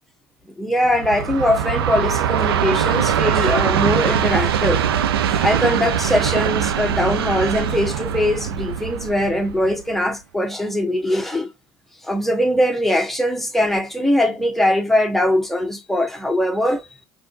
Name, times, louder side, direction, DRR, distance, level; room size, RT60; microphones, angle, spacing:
voice 1, 0.6-4.8 5.3-11.5 12.0-16.9, left 1 dB, ahead, 0.9 m, -21 dB
Train, 0.8-10.0, right 9 dB, 70° right, 0.5 m, -22 dB
4.8 x 2.6 x 2.6 m
figure-of-eight pair, 65°, 13 cm